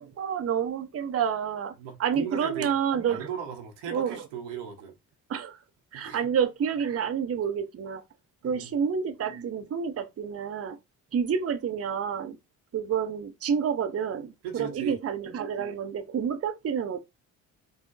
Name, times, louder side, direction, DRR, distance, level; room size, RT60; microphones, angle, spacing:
voice 1, 0.0-1.7 2.0-3.3 3.9-4.2 5.3-5.6 5.9-8.0 8.4-10.8 11.1-12.4 12.7-17.0, right 7 dB, 35° right, 0.7 m, -29 dB
voice 2, 1.8-2.7 3.1-4.9 5.9-6.3 8.4-8.7 14.4-15.0, right 7 dB, 85° right, 1.0 m, -37 dB
3.7 x 2.0 x 3.9 m
supercardioid pair, 60°, 41 cm